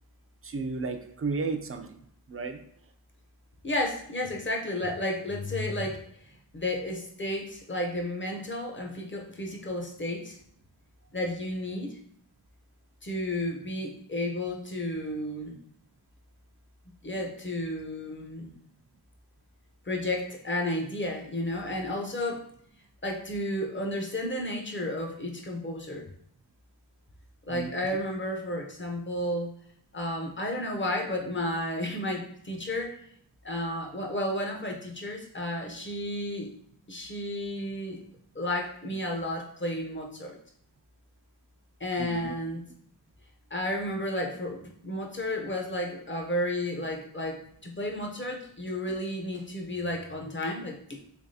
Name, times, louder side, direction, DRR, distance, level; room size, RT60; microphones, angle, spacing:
voice 1, 0.4-1.9 2.3-2.6 27.5-27.7 42.0-42.3, right 4 dB, 35° right, 7 dB, 0.4 m, -33 dB
voice 2, 3.6-6.0 6.5-10.4 11.1-12.0 13.0-15.6 17.0-18.6 19.9-22.5 23.0-26.1 27.5-29.5 29.9-32.9 33.4-36.5 36.9-38.0 38.3-40.4 41.8-42.6 43.5-51.0, left 1 dB, 30° left, 1 dB, 0.7 m, -32 dB
3.4 x 3.2 x 2.7 m, 0.66 s
wide cardioid pair, 50°, 39 cm